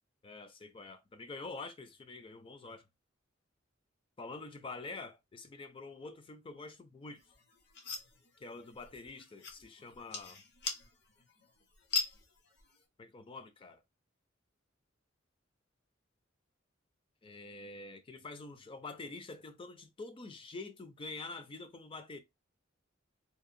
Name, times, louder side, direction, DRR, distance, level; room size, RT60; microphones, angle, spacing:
voice 1, 0.2-2.9 4.2-7.2 8.4-10.4 13.0-13.8 17.2-22.2, left 3 dB, 25° left, 0.4 m, -46 dB
sound 1, 7.2-12.8, left 4 dB, 60° left, 0.7 m, -41 dB
2.8 x 2.1 x 2.5 m
head